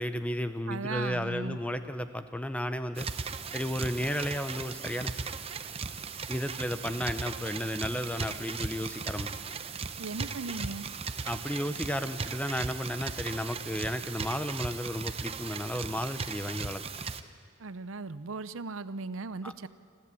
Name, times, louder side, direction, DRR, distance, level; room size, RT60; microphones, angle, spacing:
voice 1, 0.0-3.1 3.5-5.1 6.3-9.3 11.3-16.8 19.4-19.5, equal, 5° left, 10 dB, 0.7 m, -33 dB
voice 2, 0.7-1.6 10.0-10.9 17.6-19.7, right 3 dB, 70° right, 15 dB, 0.7 m, -37 dB
sound 1, 2.9-17.2, right 5 dB, 30° right, 0.7 m, -37 dB
27.5 x 13.5 x 8.4 m, 2.1 s
head